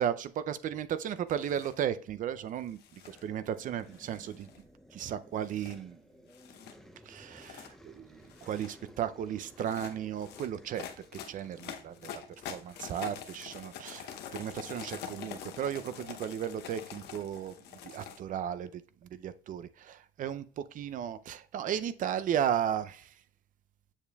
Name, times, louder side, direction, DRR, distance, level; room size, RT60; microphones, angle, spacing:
voice 1, 0.0-4.5 4.9-6.0 7.1-10.9 11.3-12.1 12.5-17.5 17.8-23.1, right 9 dB, 50° right, 14 dB, 0.4 m, -35 dB
sound 1, 1.3-1.8 2.7-3.2 3.9-4.7 5.4-5.8 6.3-6.7 7.3-7.7 8.2-8.8 9.5-18.2, left 8 dB, 75° left, 0.8 m, -45 dB
sound 2, 3.0-13.3, equal, ahead, 0.7 m, -57 dB
7.1 x 6.9 x 2.3 m, 0.43 s
cardioid pair, 110°, 17 cm